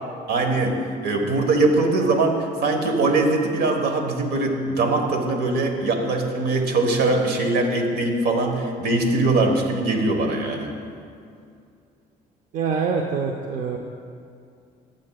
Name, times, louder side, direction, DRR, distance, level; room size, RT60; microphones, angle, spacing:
voice 1, 0.3-0.8 1.0-10.7, right 2 dB, 70° right, 3 dB, 1.3 m, -21 dB
voice 2, 12.5-13.8, right 5 dB, 50° right, 2 dB, 0.6 m, -25 dB
15.0 x 7.5 x 2.3 m, 2.4 s
cardioid pair, 110°, 17 cm